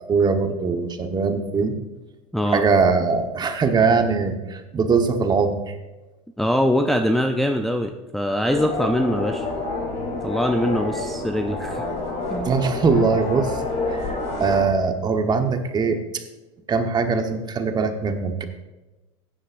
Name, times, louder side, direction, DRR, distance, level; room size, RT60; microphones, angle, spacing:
voice 1, 0.0-1.8 2.5-5.8 11.4-11.7 12.0-12.2 12.4-13.6 13.9-14.1 14.4-16.2 16.7-18.4, right 4 dB, 25° right, 6 dB, 1.2 m, -21 dB
voice 2, 6.4-9.5 10.2-11.8 12.3-12.6, equal, ahead, 3 dB, 0.5 m, -23 dB
sound 1, 8.5-14.6, left 3 dB, 45° left, 3.6 m, -28 dB
15.0 x 10.0 x 2.6 m, 1.1 s
supercardioid pair, 105°, 16 cm